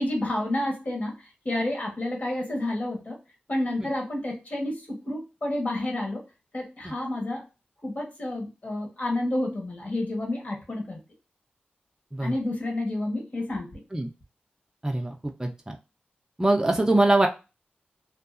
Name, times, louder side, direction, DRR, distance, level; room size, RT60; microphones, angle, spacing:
voice 1, 0.0-3.2 3.5-6.2 6.5-7.4 7.8-11.0 12.2-13.8, left 1 dB, 45° left, 0 dB, 1.2 m, -30 dB
voice 2, 14.8-15.1 15.4-15.8 16.4-17.3, right 2 dB, 15° right, 2 dB, 0.4 m, -23 dB
2.7 x 2.3 x 2.4 m, 0.29 s
cardioid pair, 60°, 4 cm